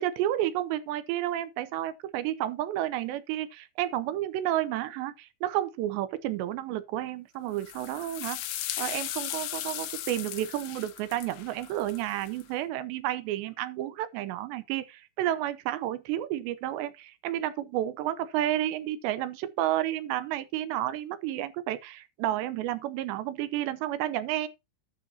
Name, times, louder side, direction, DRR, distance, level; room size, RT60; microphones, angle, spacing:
voice 1, 0.0-8.4 8.8-24.5, right 13 dB, 80° right, 2.8 m, -31 dB
sound 1, 7.6-12.4, left 13 dB, 75° left, 3.5 m, -37 dB
12.0 x 8.5 x 2.8 m
omnidirectional pair, 5.5 m